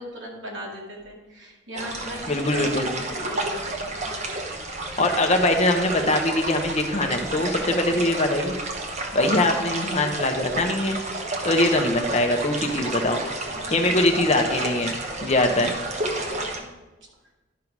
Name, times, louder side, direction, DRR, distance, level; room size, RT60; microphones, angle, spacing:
voice 1, 0.0-4.0 7.8-8.1 11.4-11.6 12.8-13.0 13.5-14.4 15.3-15.7 16.1-16.7, equal, 70° right, -2 dB, 2.4 m, -39 dB
sound 1, 1.7-16.6, right 2 dB, 35° right, 1.0 m, -30 dB
voice 2, 2.3-2.9 5.0-8.5 9.1-11.0 11.4-13.2 13.7-14.9 15.2-15.7, left 1 dB, 35° left, 4 dB, 0.9 m, -22 dB
11.5 x 5.7 x 4.7 m, 1.1 s
head